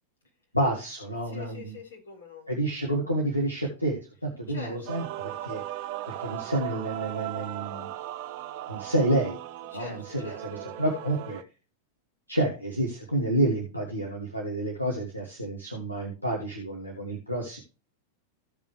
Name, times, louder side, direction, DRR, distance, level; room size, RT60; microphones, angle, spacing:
voice 1, 0.5-1.7 2.5-5.6 6.2-7.9 8.7-9.4 9.7-11.4 12.3-17.6, right 1 dB, 90° left, 1 dB, 2.0 m, -29 dB
voice 2, 1.2-2.5 4.5-5.1 9.7-11.1, left 3 dB, 70° left, -1 dB, 5.0 m, -44 dB
Male singing / Female singing / Musical instrument, 4.9-11.4, right 14 dB, 45° right, 0.7 m, -37 dB
16.0 x 5.4 x 3.3 m, 0.32 s
figure-of-eight pair, 90°, 0 cm